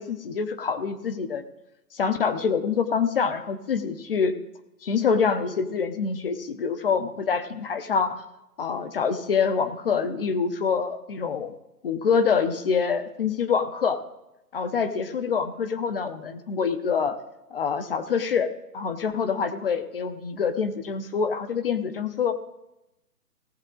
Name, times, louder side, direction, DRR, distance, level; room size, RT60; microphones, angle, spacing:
voice 1, 0.0-1.4 1.9-4.3 4.8-8.2 8.6-11.5 11.8-14.0 14.5-17.2 17.5-18.5 18.7-22.3, left 6 dB, 35° left, 10 dB, 0.8 m, -26 dB
17.5 x 7.3 x 3.8 m, 0.91 s
hypercardioid pair, 155°, 47 cm